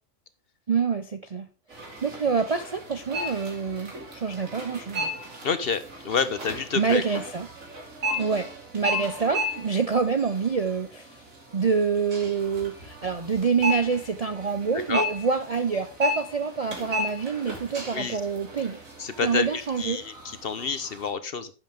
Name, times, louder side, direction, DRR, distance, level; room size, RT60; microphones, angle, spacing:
voice 1, 0.7-5.1 6.8-7.5 8.2-8.5 8.7-11.1 11.5-18.8 19.2-20.0, right 5 dB, 45° right, 9 dB, 0.5 m, -26 dB
sound 1, 1.7-21.1, equal, 75° right, 3.0 m, -35 dB
voice 2, 5.4-7.0 14.9-15.0 17.9-18.2 19.0-21.5, left 5 dB, 50° left, 12 dB, 0.9 m, -28 dB
10.5 x 7.9 x 3.5 m, 0.33 s
omnidirectional pair, 1.4 m